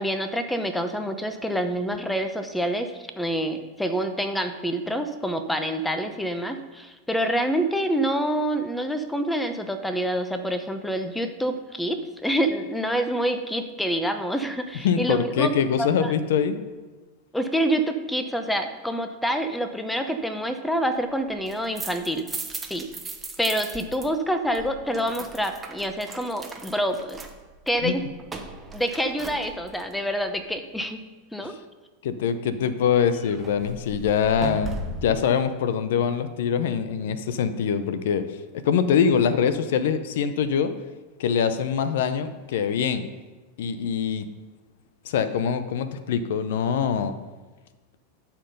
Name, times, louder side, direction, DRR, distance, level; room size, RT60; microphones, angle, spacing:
voice 1, 0.0-15.5 15.8-16.1 17.3-22.3 22.7-22.9 23.4-27.2 27.7-28.0 28.7-31.0 31.3-31.5, equal, 5° left, 7 dB, 0.9 m, -27 dB
voice 2, 14.8-16.6 27.8-27.9 32.0-38.4 38.6-40.7 41.2-43.1 43.6-44.2 45.0-47.1, left 7 dB, 70° left, 11 dB, 0.6 m, -24 dB
sound 1, 21.3-24.1 24.3-29.9 33.0-35.2, right 3 dB, 15° right, 1.2 m, -38 dB
11.0 x 4.5 x 5.4 m, 1.3 s
hypercardioid pair, 100°, 0 cm